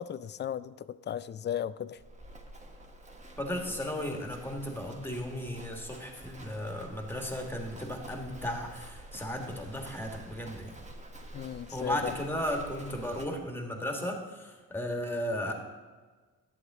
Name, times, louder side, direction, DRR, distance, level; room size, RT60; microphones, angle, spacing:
voice 1, 0.0-2.0 11.3-12.1, left 9 dB, 30° left, 16 dB, 0.4 m, -35 dB
Livestock farm animals working animals, 2.0-13.3, right 1 dB, 20° right, 1.2 m, -48 dB
voice 2, 3.4-10.7 11.7-15.5, left 1 dB, 5° left, 2 dB, 1.7 m, -35 dB
11.0 x 8.0 x 3.6 m, 1.4 s
cardioid pair, 75°, 35 cm